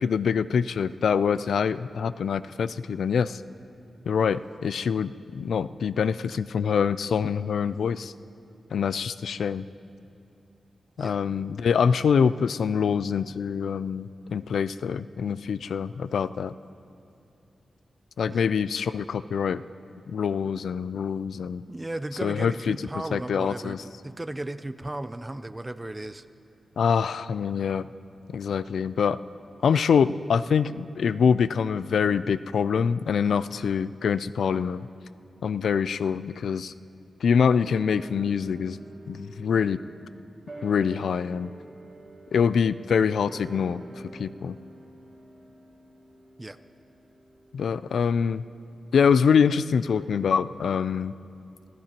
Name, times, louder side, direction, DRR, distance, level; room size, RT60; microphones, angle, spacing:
voice 1, 0.0-3.4 4.1-8.1 8.7-9.7 11.0-16.5 18.2-19.6 20.1-21.6 22.2-22.8 23.1-23.8 26.8-27.9 28.3-29.2 29.6-34.9 35.4-36.7 37.2-38.8 39.1-39.8 40.6-41.5 42.3-43.8 44.1-44.6 47.5-48.4 48.9-51.1, left 6 dB, 85° left, 15 dB, 0.3 m, -25 dB
voice 2, 21.7-26.2 46.4-46.6, right 1 dB, 15° right, 11 dB, 0.5 m, -35 dB
sound 1, 37.6-48.3 48.5-48.6, right 2 dB, 35° right, 4.4 m, -47 dB
28.0 x 16.5 x 3.0 m, 2.7 s
wide cardioid pair, 140°, 0 cm